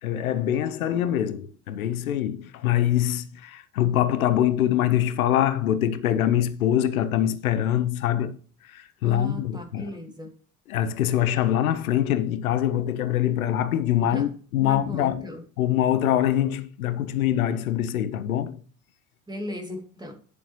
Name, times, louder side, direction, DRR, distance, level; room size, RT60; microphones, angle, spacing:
voice 1, 0.0-8.4 8.6-9.9 10.7-15.3 15.6-18.6, left 11 dB, 80° left, 0.8 m, -24 dB
voice 2, 9.0-10.3 14.0-14.3 14.6-15.4 19.3-20.1, left 1 dB, 10° right, 2.5 m, -36 dB
10.5 x 7.0 x 3.0 m
hypercardioid pair, 60°, 42 cm